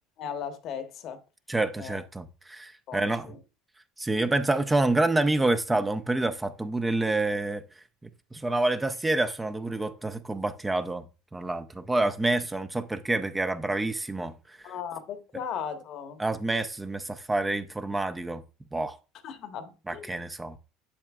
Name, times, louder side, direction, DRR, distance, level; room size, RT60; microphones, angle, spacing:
voice 1, 0.2-1.2 1.8-2.0 2.9-3.4 14.6-16.2 19.2-20.1, left 7 dB, 55° left, 1.1 m, -37 dB
voice 2, 1.5-3.3 4.0-7.6 8.0-11.0 11.3-14.7 16.2-18.4 18.7-19.0 19.9-20.5, right 2 dB, 15° right, 0.7 m, -28 dB
7.4 x 7.2 x 2.3 m
hypercardioid pair, 80°, 0 cm